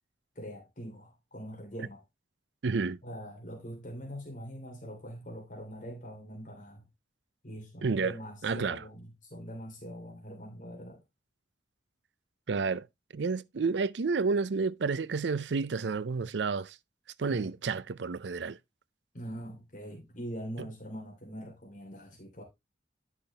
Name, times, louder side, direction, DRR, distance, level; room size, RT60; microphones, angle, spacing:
voice 1, 0.3-2.0 3.0-6.9 7.4-11.0 17.3-17.5 19.1-22.4, equal, 45° left, 3.0 m, -43 dB
voice 2, 2.6-3.0 7.8-8.1 8.4-8.8 12.5-12.9 13.1-16.8 17.2-18.6, right 4 dB, 75° right, 0.5 m, -30 dB
10.5 x 5.9 x 3.3 m
head